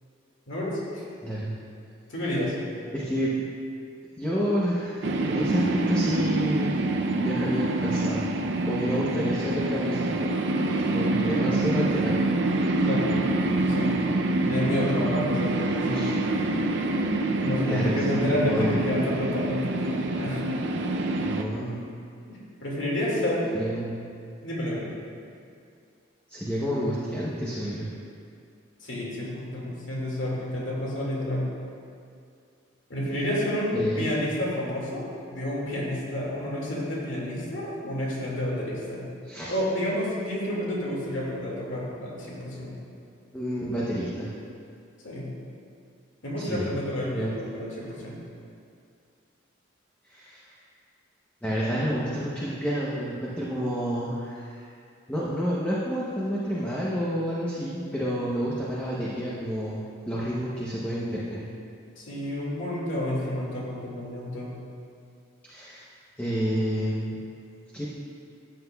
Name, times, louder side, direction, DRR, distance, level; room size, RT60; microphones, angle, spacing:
voice 1, 0.5-1.0 2.1-2.5 12.8-13.1 13.6-13.9 14.5-16.0 17.4-20.7 22.3-23.4 24.4-24.9 28.8-31.5 32.9-39.1 39.5-42.8 45.0-45.3 46.2-48.2 62.0-64.6, left 1 dB, 75° left, -5 dB, 2.1 m, -30 dB
voice 2, 1.2-1.6 2.9-3.3 4.2-6.8 7.2-8.2 8.6-10.2 10.9-12.3 15.9-16.2 17.7-18.8 21.2-21.8 23.5-24.0 26.3-27.9 33.7-34.0 39.3-39.5 43.3-44.3 46.4-46.7 47.1-47.3 50.0-50.4 51.4-54.7 55.1-61.4 65.5-65.8 66.2-67.2 67.7-67.9, equal, 10° left, -7 dB, 0.8 m, -29 dB
sound 1, 5.0-21.4, right 2 dB, 65° right, 0.5 m, -26 dB
13.0 x 7.9 x 2.3 m, 2.3 s
head